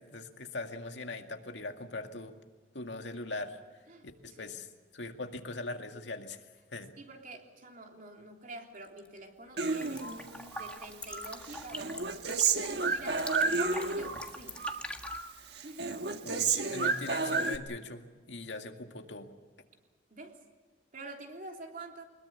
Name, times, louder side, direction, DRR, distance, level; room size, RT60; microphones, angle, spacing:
voice 1, 0.0-2.3 2.7-3.6 4.0-4.7 4.9-6.5 6.7-6.9 16.2-19.3, left 2 dB, 90° left, 5 dB, 2.1 m, -41 dB
voice 2, 3.9-4.6 7.0-10.1 10.5-12.0 12.7-14.6 15.6-15.9 20.1-20.4 20.9-22.0, right 2 dB, 50° right, 2 dB, 3.4 m, -47 dB
sound 1, 8.8-9.2 9.5-15.2, left 2 dB, 5° left, 1.6 m, -45 dB
Human voice, 9.6-10.7 11.1-14.3 14.6-15.3 15.6-17.6, right 4 dB, 65° right, 1.4 m, -31 dB
24.0 x 21.0 x 7.0 m, 1.4 s
head